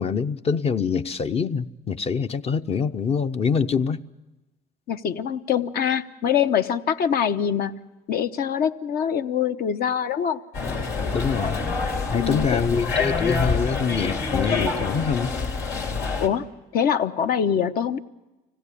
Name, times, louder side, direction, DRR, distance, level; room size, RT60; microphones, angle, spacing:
voice 1, 0.0-4.1 11.1-11.6 12.1-15.3, left 6 dB, 35° left, 10 dB, 0.7 m, -25 dB
voice 2, 4.9-7.8 8.1-10.4 12.1-12.7 16.2-16.5 16.7-18.0, left 8 dB, 65° left, 9 dB, 1.0 m, -24 dB
sound 1, 10.5-16.3, left 4 dB, 90° left, 3.0 m, -26 dB
25.0 x 17.5 x 8.4 m, 1.1 s
cardioid pair, 110°, 17 cm